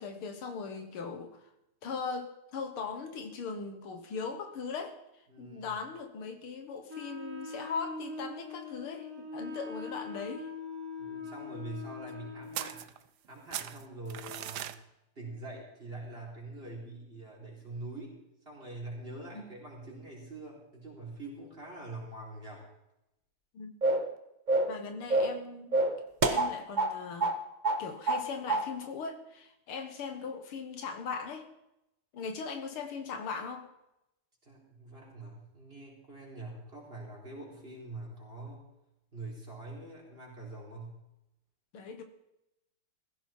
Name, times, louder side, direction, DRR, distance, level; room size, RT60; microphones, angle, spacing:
voice 1, 0.0-1.5 1.8-10.5 19.3-19.5 23.5-23.7 24.7-25.8 26.2-27.3 27.8-31.5 32.1-33.7 41.7-42.0, left 5 dB, 80° left, 6 dB, 2.2 m, -39 dB
voice 2, 5.3-5.7 11.0-12.9 13.3-14.7 15.1-18.2 18.4-22.7 34.4-38.6 39.1-41.0, right 2 dB, 25° right, -2 dB, 4.6 m, -44 dB
Wind instrument woodwind instrument, 6.9-12.7, left 3 dB, 90° right, 3.2 m, -42 dB
sound 1, 12.5-13.3 13.5-14.8, right 12 dB, 70° right, 1.0 m, -39 dB
sound 2, 23.8-24.1 24.5-24.8 25.1-25.4 25.7-26.9 27.2-27.4 27.6-28.2 28.5-28.7, right 2 dB, 45° right, 0.6 m, -27 dB
16.5 x 15.0 x 4.5 m, 0.88 s
omnidirectional pair, 2.4 m